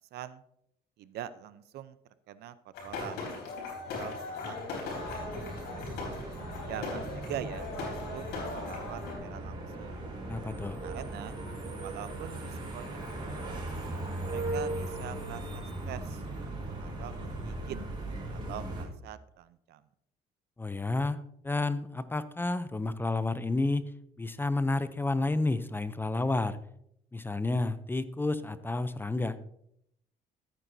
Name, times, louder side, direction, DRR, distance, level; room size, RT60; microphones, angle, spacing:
voice 1, 0.1-0.4 1.0-2.0 2.3-3.4 3.8-5.4 6.7-10.1 10.8-11.4 11.8-13.0 13.3-13.7 14.3-16.2 16.8-17.8 18.3-19.8, right 11 dB, 75° right, 14 dB, 0.6 m, -44 dB
sound 1, 2.7-9.2, left 3 dB, 90° left, 4.1 m, -38 dB
sound 2, 4.9-18.8, right 2 dB, 30° right, 3.9 m, -38 dB
voice 2, 10.3-10.8 20.6-21.2 21.4-23.8 24.2-26.6 27.1-29.4, left 2 dB, 10° left, 14 dB, 0.5 m, -30 dB
14.0 x 9.1 x 2.7 m, 0.73 s
cardioid pair, 110°, 17 cm